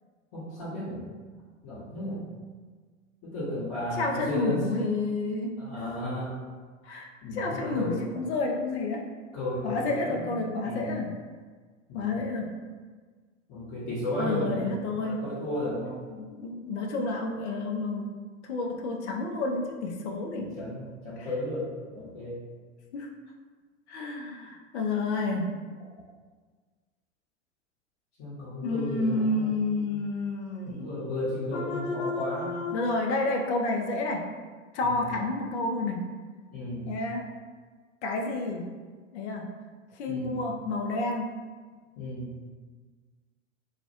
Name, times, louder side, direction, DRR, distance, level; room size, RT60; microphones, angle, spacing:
voice 1, 0.3-1.1 1.6-2.2 3.2-4.6 5.6-6.3 7.2-8.0 9.3-11.1 11.9-12.3 13.5-14.7 15.0-16.2 20.4-22.4 28.2-29.9 30.6-32.6 34.8-35.1 36.5-36.9 40.1-40.4 42.0-42.3, left 1 dB, 40° left, -11 dB, 0.9 m, -34 dB
voice 2, 4.0-5.5 6.8-9.0 9.6-11.1 11.9-12.5 14.2-15.2 16.3-18.1 18.5-20.5 22.9-23.1 23.9-25.5 28.6-30.9 31.5-34.2 34.7-36.0 36.8-37.3 38.0-38.6 39.1-39.4 40.0-41.2, left 2 dB, 60° left, 2 dB, 0.5 m, -30 dB
2.3 x 2.0 x 2.7 m, 1.5 s
figure-of-eight pair, 85°, 38 cm